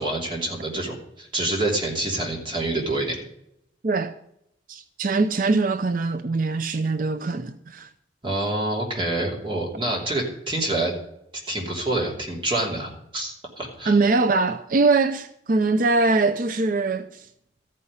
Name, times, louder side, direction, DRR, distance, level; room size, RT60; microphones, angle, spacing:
voice 1, 0.0-3.2 8.2-10.9 11.5-13.9, right 2 dB, 25° right, 3.0 m, -27 dB
voice 2, 4.7-7.9 13.9-17.3, right 3 dB, 50° right, 0.6 m, -22 dB
14.0 x 5.6 x 9.5 m
head